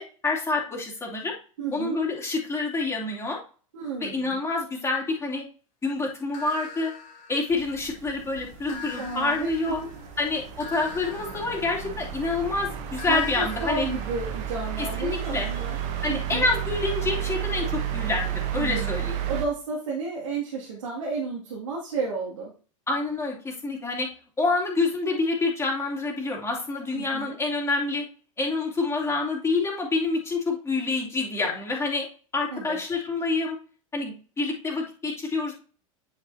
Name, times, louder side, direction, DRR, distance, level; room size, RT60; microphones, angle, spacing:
voice 1, 0.0-1.3 1.7-3.4 4.0-5.4 5.8-6.9 7.3-9.8 10.2-13.9 14.8-15.5 16.0-19.1 22.9-24.1 24.4-28.1 28.4-32.1 32.3-33.6 33.9-35.5, left 3 dB, 15° left, -2 dB, 2.6 m, -27 dB
voice 2, 1.6-2.0 3.7-4.4 8.7-9.9 13.0-15.8 16.1-16.4 18.5-22.5 26.9-27.4 32.5-32.8, right 4 dB, 65° right, -4 dB, 2.3 m, -32 dB
sound 1, 6.3-8.0 8.7-12.4 13.0-16.7, left 5 dB, 45° left, 2.7 m, -43 dB
sound 2, 7.5-19.5, right 10 dB, 45° right, 1.2 m, -32 dB
9.8 x 5.9 x 2.8 m, 0.38 s
figure-of-eight pair, 90°, 18 cm